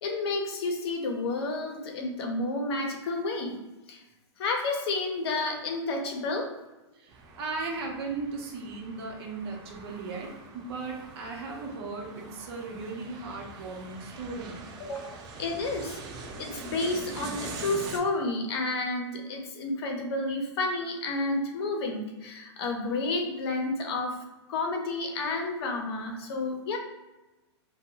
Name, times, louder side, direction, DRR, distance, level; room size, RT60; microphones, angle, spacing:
voice 1, 0.0-3.6 3.9-4.0 4.4-6.5 14.8-16.0 16.4-24.2 24.5-26.8, left 2 dB, 60° left, 2 dB, 0.7 m, -31 dB
voice 2, 6.9-14.6, right 3 dB, 55° right, 0 dB, 0.8 m, -37 dB
sound 1, 7.1-18.0, right 3 dB, 25° right, 0.4 m, -43 dB
2.6 x 2.2 x 2.9 m, 1.1 s
hypercardioid pair, 135°, 15 cm